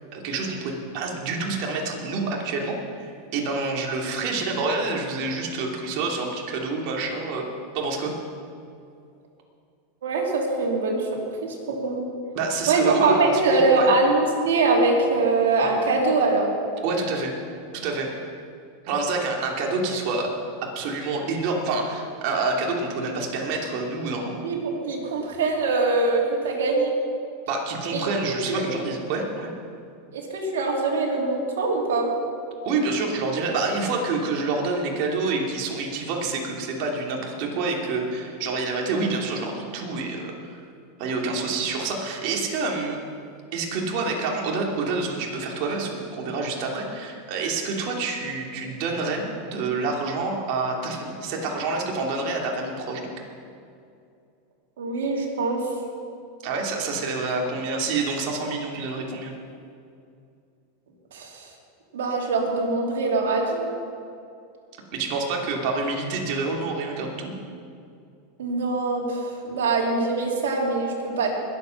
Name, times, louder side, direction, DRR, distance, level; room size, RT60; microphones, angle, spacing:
voice 1, 0.1-7.5 7.7-8.1 12.3-13.9 16.8-17.4 17.7-18.2 18.8-20.3 20.6-24.4 27.5-29.5 32.6-40.4 41.0-43.0 43.5-53.1 56.4-59.3 64.9-67.4, right 3 dB, 55° right, 0 dB, 2.9 m, -27 dB
voice 2, 10.0-11.1 11.4-12.0 12.7-16.5 24.4-24.6 24.8-26.9 27.9-28.0 28.5-28.6 30.1-32.1 54.8-55.6 61.1-61.5 61.9-63.6 68.4-71.3, right 3 dB, 85° right, -2 dB, 3.3 m, -23 dB
21.0 x 8.1 x 5.9 m, 2.4 s
hypercardioid pair, 120°, 0 cm